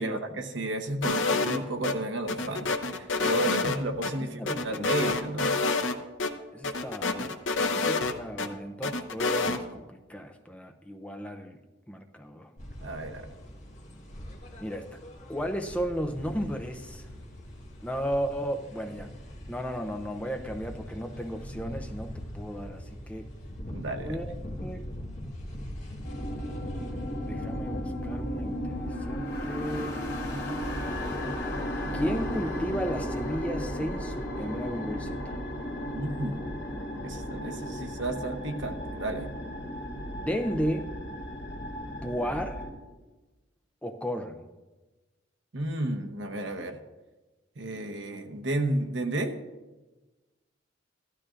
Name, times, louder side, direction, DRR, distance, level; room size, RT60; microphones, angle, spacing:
voice 1, 0.0-5.5 12.8-13.3 23.7-24.2 35.9-36.6 37.0-39.3 45.5-46.8 47.6-49.3, right 2 dB, 70° right, 4 dB, 1.0 m, -32 dB
sound 1, 1.0-1.9 2.3-4.1 4.5-5.9 6.2-6.3 6.6-8.5 8.8-9.6, left 3 dB, 90° left, 0.8 m, -28 dB
voice 2, 4.2-5.1 6.5-11.6 11.9-12.5 14.6-14.9 15.3-17.1 17.8-19.1 19.5-23.3 24.0-24.3 24.6-24.9 27.3-30.6 31.9-35.4 40.1-40.9 42.0-42.6 43.8-44.5, equal, 5° left, 5 dB, 0.5 m, -34 dB
sound 2, 12.6-28.9, equal, 40° left, 1.6 m, -41 dB
sound 3, 26.0-42.7, equal, 70° left, 2.5 m, -35 dB
15.0 x 12.0 x 2.5 m, 1.2 s
head